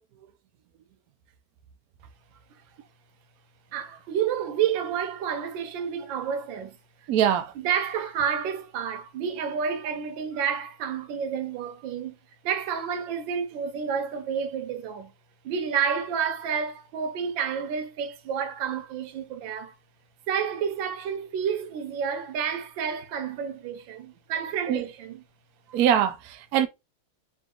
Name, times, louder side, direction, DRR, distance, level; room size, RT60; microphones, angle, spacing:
voice 1, 3.7-6.8 7.6-12.1 12.4-15.1 15.4-19.7 20.3-25.2, right 7 dB, 70° right, 1.4 m, -30 dB
voice 2, 7.1-7.5 24.7-24.8 25.7-26.7, right 10 dB, 85° right, 0.8 m, -23 dB
3.9 x 2.7 x 3.7 m
omnidirectional pair, 2.3 m